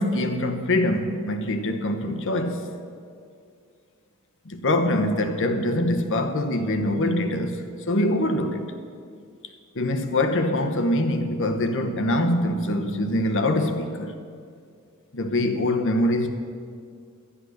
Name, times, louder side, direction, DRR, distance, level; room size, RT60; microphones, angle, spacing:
voice 1, 0.0-2.7 4.4-8.6 9.7-14.1 15.1-16.3, left 1 dB, 60° left, 1.0 m, -24 dB
12.5 x 9.9 x 6.5 m
head